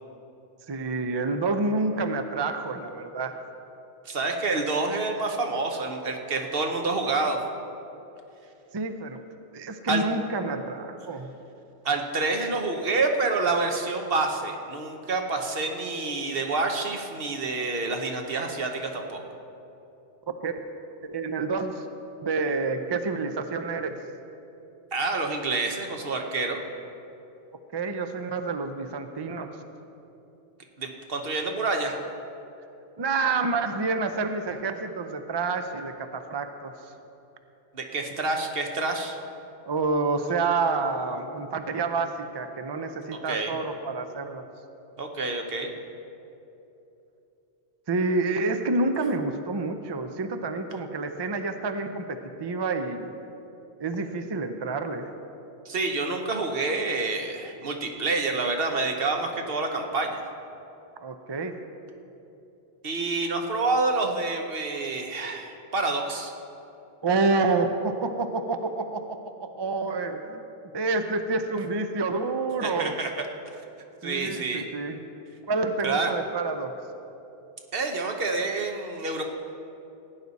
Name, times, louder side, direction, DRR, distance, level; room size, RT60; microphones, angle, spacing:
voice 1, 0.7-3.3 8.7-9.2 9.5-11.4 20.4-20.6 21.0-21.9 22.2-24.0 27.7-29.5 33.0-36.7 39.7-44.4 47.9-53.1 53.8-55.1 61.0-61.6 67.0-70.4 70.7-72.9 74.0-75.1 75.5-76.7, right 3 dB, 35° right, 7 dB, 0.4 m, -28 dB
voice 2, 4.0-7.4 9.9-10.0 11.8-19.2 24.9-26.6 30.8-32.0 37.7-39.2 43.1-43.5 45.0-45.7 55.6-60.3 62.8-66.3 72.6-73.1 74.0-74.6 75.8-76.1 77.7-79.2, right 3 dB, 55° right, 3 dB, 1.1 m, -28 dB
16.5 x 9.5 x 4.1 m, 2.9 s
omnidirectional pair, 1.2 m